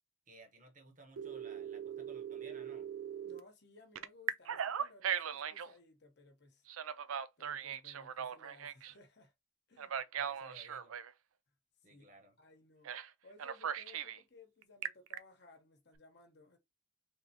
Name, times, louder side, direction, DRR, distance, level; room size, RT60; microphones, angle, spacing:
voice 1, 0.3-2.9 10.2-10.9 11.8-12.3, right 2 dB, 40° right, 1.0 m, -58 dB
Telephone, 1.2-3.4 3.9-5.7 6.7-8.9 9.8-11.1 12.8-13.1 13.4-14.2 14.6-15.2, right 8 dB, 85° right, 0.4 m, -39 dB
voice 2, 3.2-6.7 7.4-9.3 9.7-10.0 11.9-12.1 12.4-12.9 13.2-16.6, left 2 dB, 55° left, 1.0 m, -60 dB
3.5 x 3.3 x 2.8 m
head